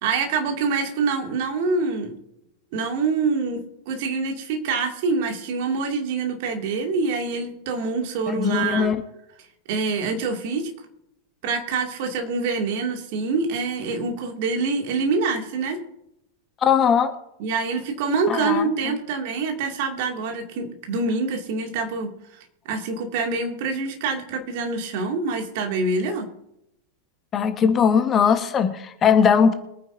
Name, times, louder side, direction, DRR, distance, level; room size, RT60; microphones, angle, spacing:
voice 1, 0.0-2.1 2.7-3.6 3.9-8.9 9.7-10.7 11.4-15.8 17.4-26.3, right 4 dB, 50° right, 3 dB, 2.3 m, -25 dB
voice 2, 8.3-9.0 16.6-17.1 18.3-18.7 27.3-29.5, left 7 dB, 25° left, 8 dB, 1.2 m, -19 dB
23.0 x 9.6 x 2.7 m, 0.81 s
figure-of-eight pair, 90°, 0 cm